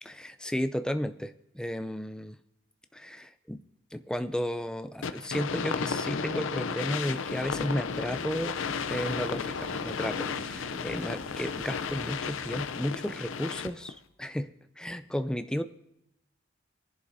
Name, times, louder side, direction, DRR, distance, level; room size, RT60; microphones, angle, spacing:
voice 1, 0.0-2.4 2.9-3.6 3.9-8.5 8.9-14.5 14.8-15.6, equal, 5° left, 10 dB, 0.4 m, -33 dB
sound 1, 5.0-13.9, left 6 dB, 80° left, 0.5 m, -34 dB
sound 2, 7.4-12.7, equal, 55° right, 4.5 m, -46 dB
22.5 x 11.0 x 2.7 m, 0.81 s
head